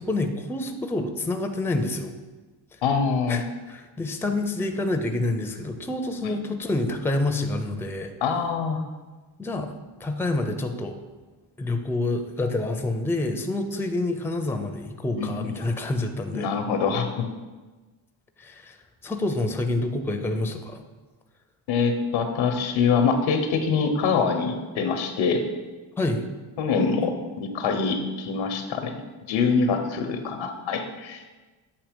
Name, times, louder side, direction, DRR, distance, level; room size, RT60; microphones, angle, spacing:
voice 1, 0.0-2.1 3.3-8.1 9.4-11.0 11.6-16.5 18.4-18.8 19.0-20.8 26.0-26.2, left 2 dB, 5° left, 6 dB, 0.5 m, -28 dB
voice 2, 2.8-3.4 6.2-6.4 8.2-8.8 15.2-15.7 16.3-17.3 21.7-25.4 26.6-29.0 29.3-31.2, left 5 dB, 85° left, 6 dB, 0.9 m, -24 dB
7.4 x 2.9 x 5.1 m, 1.3 s
cardioid pair, 75°, 46 cm